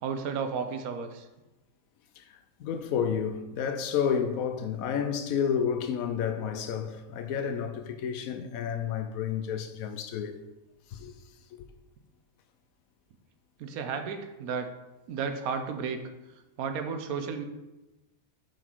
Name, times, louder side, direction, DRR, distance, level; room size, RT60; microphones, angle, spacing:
voice 1, 0.0-1.3 13.6-14.7 15.1-16.0 16.6-17.4, right 6 dB, 85° right, 1.2 m, -33 dB
voice 2, 2.6-10.4 10.9-11.1, left 7 dB, 75° left, 1.1 m, -30 dB
7.3 x 4.1 x 4.5 m
omnidirectional pair, 1.5 m